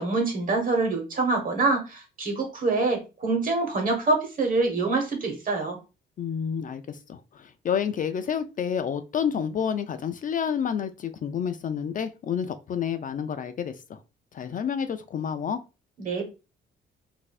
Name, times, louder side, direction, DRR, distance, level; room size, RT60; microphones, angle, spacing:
voice 1, 0.0-5.8 16.0-16.2, right 3 dB, 45° right, 3 dB, 1.3 m, -25 dB
voice 2, 6.2-14.0 14.3-15.6, left 7 dB, 40° left, 10 dB, 0.4 m, -29 dB
3.9 x 2.6 x 2.4 m, 0.29 s
cardioid pair, 90°, 20 cm